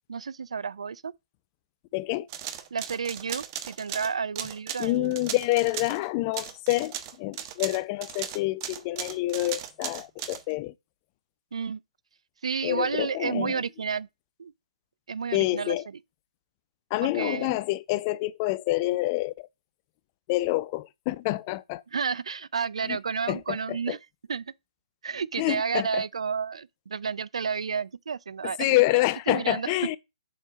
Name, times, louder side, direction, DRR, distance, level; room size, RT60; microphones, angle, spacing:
voice 1, 0.1-1.1 2.7-5.2 11.5-11.8 12.4-14.1 14.4-14.5 15.1-15.8 17.0-17.6 21.9-24.0 24.3-24.4 25.0-28.8 29.3-29.7, right 6 dB, 60° right, 0.5 m, -31 dB
voice 2, 1.9-2.3 4.8-10.7 12.6-13.6 15.3-15.9 16.9-19.5 20.3-21.8 22.8-23.0 23.3-24.0 25.4-26.0 28.6-30.0, left 19 dB, 25° left, 0.5 m, -27 dB
sound 1, 2.3-6.0 6.3-10.4, right 10 dB, 30° right, 1.2 m, -37 dB
7.9 x 4.4 x 6.1 m
figure-of-eight pair, 135°, 4 cm